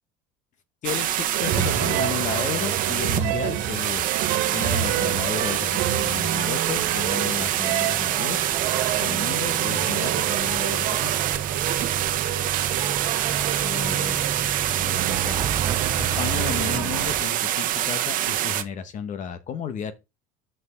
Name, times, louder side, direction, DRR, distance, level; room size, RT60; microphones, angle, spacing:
voice 1, 0.8-4.1 4.5-8.4 9.0-11.1 13.6-14.3 14.8-15.4 15.9-19.9, left 8 dB, 45° left, 1.3 m, -33 dB
sound 1, 0.8-18.6, right 12 dB, 50° right, 1.0 m, -26 dB
sound 2, 1.3-17.1, right 11 dB, 70° right, 1.6 m, -30 dB
sound 3, 7.0-17.2, right 7 dB, 25° right, 0.6 m, -33 dB
6.2 x 5.4 x 7.0 m
cardioid pair, 120°, 17 cm